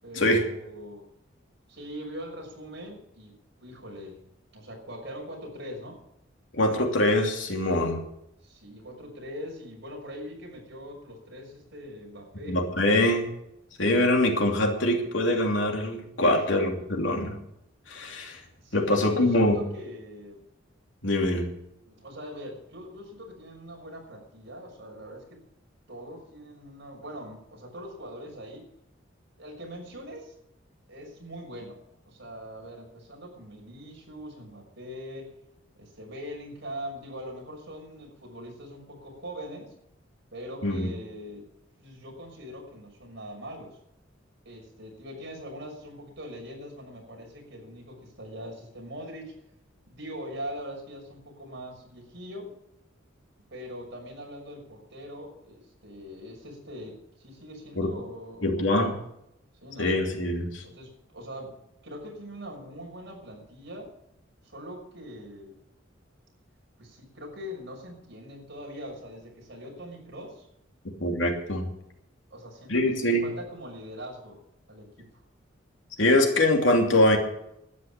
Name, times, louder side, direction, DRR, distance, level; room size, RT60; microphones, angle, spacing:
voice 1, 0.0-1.1 1.7-3.3 3.6-4.3 4.5-6.0 8.4-12.6 16.3-16.5 17.2-17.3 18.6-20.4 21.9-25.4 25.9-28.7 29.4-30.3 30.9-31.8 32.1-35.3 35.8-39.7 40.3-41.5 41.8-43.8 44.4-49.3 49.9-52.5 53.5-58.9 59.6-59.9 60.6-63.9 64.4-65.6 66.8-70.5 72.3-74.4 74.7-75.2, equal, 60° right, 0 dB, 6.2 m, -42 dB
voice 2, 6.5-8.0 12.5-13.3 13.8-17.3 17.9-18.4 18.7-19.6 21.0-21.5 40.6-40.9 57.8-57.9 58.4-58.9 59.8-60.6 71.0-71.7 72.7-73.3 76.0-77.2, left 1 dB, 75° left, 2 dB, 2.9 m, -23 dB
12.5 x 9.8 x 8.8 m, 0.82 s
head